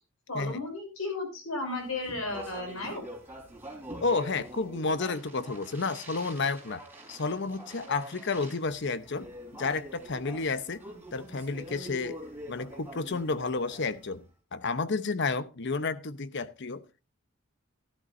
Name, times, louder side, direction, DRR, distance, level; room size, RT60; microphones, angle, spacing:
voice 1, 0.3-3.0, left 2 dB, 80° left, 5.4 m, -34 dB
Speech, 1.8-14.2, right 1 dB, 10° right, 3.8 m, -45 dB
voice 2, 4.0-6.8 7.1-10.8 11.1-12.2 12.5-14.2 14.5-16.8, left 4 dB, 55° left, 0.8 m, -31 dB
14.0 x 12.0 x 2.6 m
head